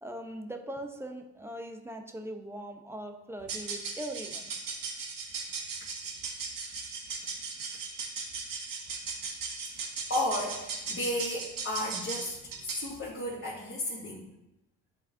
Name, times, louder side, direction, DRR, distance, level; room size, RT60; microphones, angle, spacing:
voice 1, 0.0-4.5, right 1 dB, 5° right, 4 dB, 0.9 m, -40 dB
sound 1, 3.4-12.9, right 4 dB, 50° right, 1.3 m, -38 dB
voice 2, 9.7-14.3, left 1 dB, 30° left, -7 dB, 2.2 m, -34 dB
10.5 x 4.0 x 2.8 m, 0.92 s
supercardioid pair, 65°, 41 cm